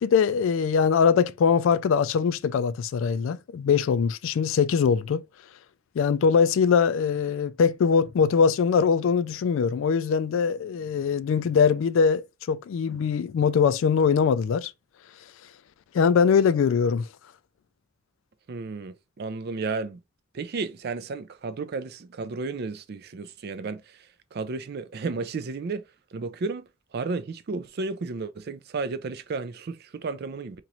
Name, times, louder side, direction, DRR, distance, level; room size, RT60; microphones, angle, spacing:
voice 1, 0.0-5.2 6.0-14.7 15.9-17.1, left 6 dB, 65° left, 0.3 m, -22 dB
voice 2, 18.5-20.0 20.3-25.8 26.1-30.6, right 4 dB, 50° right, 0.4 m, -33 dB
2.9 x 2.9 x 3.8 m
head